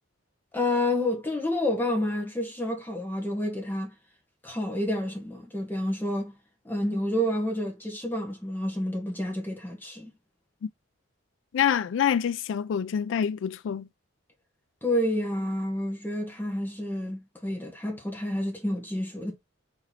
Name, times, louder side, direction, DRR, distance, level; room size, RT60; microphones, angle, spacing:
voice 1, 0.5-3.9 4.4-6.3 6.6-10.1 14.8-19.3, left 1 dB, 10° left, 1.1 m, -29 dB
voice 2, 11.5-13.9, left 8 dB, 60° left, 0.3 m, -26 dB
3.9 x 2.9 x 4.0 m
head